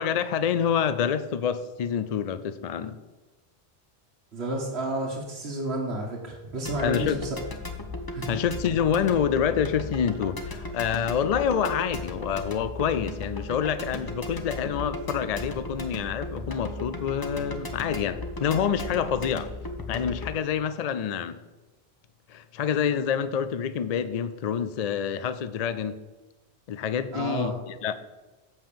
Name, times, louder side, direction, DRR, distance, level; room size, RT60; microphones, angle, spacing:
voice 1, 0.0-3.0 6.8-7.2 8.3-19.5 19.9-21.4 22.3-26.0 26.7-27.9, left 8 dB, 55° left, 12 dB, 0.4 m, -27 dB
voice 2, 4.3-7.3 8.1-8.4 27.1-27.5, right 1 dB, 75° right, -3 dB, 1.7 m, -31 dB
sound 1, 6.7-20.4, left 2 dB, 25° left, 0.8 m, -36 dB
7.5 x 5.6 x 6.8 m, 1.1 s
omnidirectional pair, 1.1 m